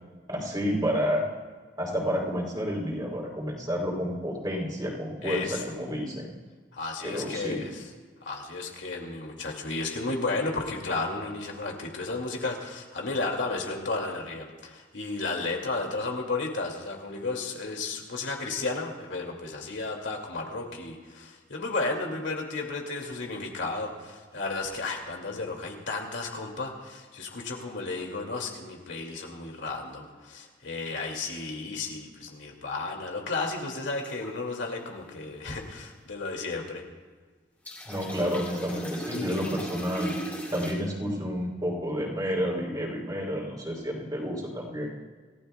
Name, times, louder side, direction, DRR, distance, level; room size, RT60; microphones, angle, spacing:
voice 1, 0.3-1.2 1.8-6.3 7.0-7.6 37.9-44.9, equal, 20° right, -2 dB, 3.4 m, -30 dB
voice 2, 5.2-5.6 6.7-7.8 8.2-36.8, left 3 dB, 75° left, 1 dB, 2.4 m, -33 dB
sound 1, 34.0-34.3 37.6-40.7, equal, 10° left, 3.1 m, -37 dB
27.5 x 15.5 x 2.3 m, 1.5 s
head